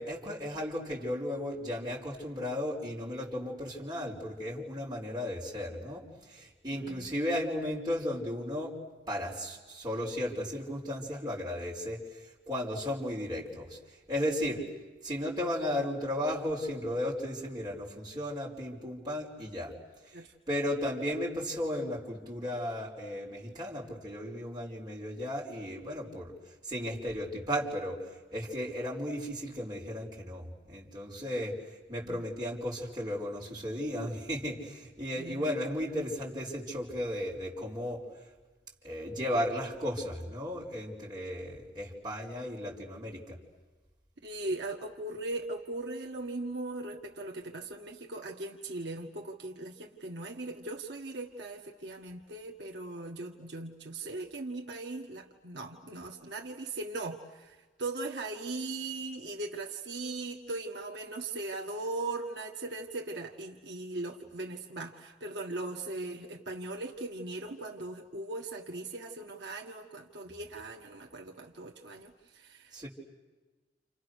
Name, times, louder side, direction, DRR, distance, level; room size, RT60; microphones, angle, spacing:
voice 1, 0.0-8.7 9.1-13.8 14.1-14.7 15.0-19.7 20.5-26.3 26.6-31.6 31.9-38.0 38.8-43.4 72.7-72.9, equal, 20° right, -4 dB, 5.0 m, -35 dB
voice 2, 6.7-7.1 20.1-20.3 35.2-35.5 44.2-72.7, right 2 dB, 70° right, 1 dB, 1.7 m, -39 dB
29.5 x 29.5 x 6.6 m, 1.3 s
head